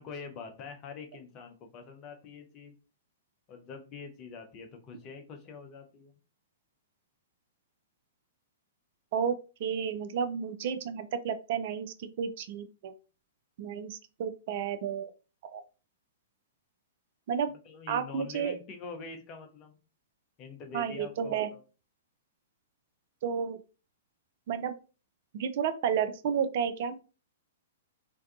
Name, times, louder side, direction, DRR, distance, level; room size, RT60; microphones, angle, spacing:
voice 1, 0.0-2.7 3.5-6.1 17.7-19.8 20.4-21.6, left 5 dB, 35° left, 4 dB, 0.6 m, -45 dB
voice 2, 9.6-12.9 13.6-15.1 15.4-15.6 17.3-17.5 17.9-18.5 20.7-21.5 23.2-23.6 24.5-24.7 25.3-27.0, right 7 dB, 50° right, 9 dB, 0.3 m, -31 dB
2.5 x 2.2 x 2.4 m, 0.34 s
figure-of-eight pair, 110°, 0 cm